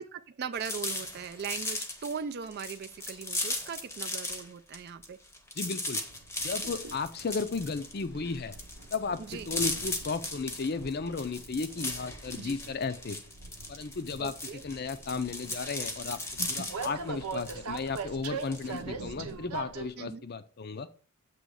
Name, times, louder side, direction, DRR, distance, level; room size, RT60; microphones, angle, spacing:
voice 1, 0.0-5.2 9.3-9.5 12.4-12.6 14.2-14.6 20.0-20.3, right 6 dB, 45° right, 0.3 m, -39 dB
sound 1, 0.5-4.5 4.7-18.8, left 2 dB, 10° left, 0.7 m, -37 dB
voice 2, 5.6-6.0 6.4-8.6 8.9-13.2 13.7-14.3 14.6-16.2 16.5-20.9, left 4 dB, 45° left, 0.5 m, -34 dB
Train, 6.1-19.9, right 5 dB, 85° right, 0.7 m, -43 dB
7.7 x 3.1 x 6.2 m
head